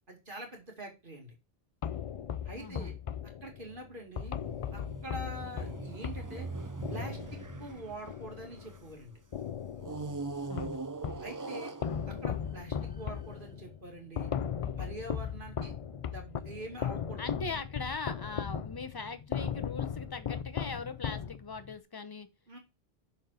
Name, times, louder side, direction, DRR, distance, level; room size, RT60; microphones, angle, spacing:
voice 1, 0.1-1.3 2.4-2.9 3.4-4.4 4.7-6.5 6.9-9.2 11.2-11.7 12.1-14.3 14.8-17.3 22.5-22.6, right 1 dB, 55° right, 2.7 m, -45 dB
sound 1, 1.8-8.9 9.3-11.3 11.8-21.7, left 8 dB, 60° left, 0.3 m, -38 dB
voice 2, 2.6-3.0 10.5-10.8 17.2-22.3, left 4 dB, 25° left, 0.7 m, -40 dB
sound 2, 4.4-9.0 9.8-13.2, right 3 dB, 25° right, 0.5 m, -41 dB
6.6 x 4.3 x 6.3 m
omnidirectional pair, 1.1 m